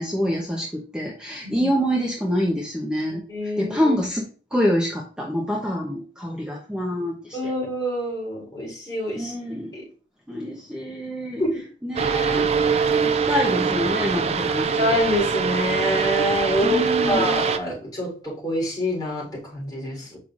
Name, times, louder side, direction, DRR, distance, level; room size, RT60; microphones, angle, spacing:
voice 1, 0.0-7.5 9.2-9.7 10.3-11.4 11.8-15.0 16.6-17.4, equal, 5° right, -2 dB, 0.8 m, -26 dB
voice 2, 3.1-4.0 7.3-9.3 9.7-9.8 11.4-11.6 14.8-20.2, left 1 dB, 20° left, -5 dB, 3.5 m, -26 dB
sound 1, 12.0-17.6, right 5 dB, 35° right, 0.4 m, -23 dB
7.6 x 5.6 x 2.5 m, 0.40 s
head